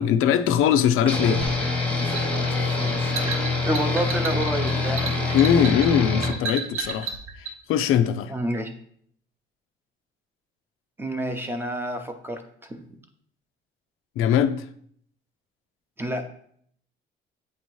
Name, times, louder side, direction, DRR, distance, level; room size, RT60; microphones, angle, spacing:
voice 1, 0.0-1.4 5.3-8.3 14.2-14.6, left 9 dB, 90° left, 0.5 m, -21 dB
sound 1, 1.0-5.8, right 5 dB, 60° right, 0.6 m, -36 dB
sound 2, 1.1-6.4, left 4 dB, 5° left, 0.9 m, -25 dB
sound 3, 1.4-7.6, right 4 dB, 85° right, 0.9 m, -33 dB
voice 2, 3.6-5.4 8.3-8.7 11.0-12.8 16.0-16.3, right 1 dB, 10° right, 0.6 m, -29 dB
8.4 x 2.8 x 4.6 m
cardioid pair, 155°, 21 cm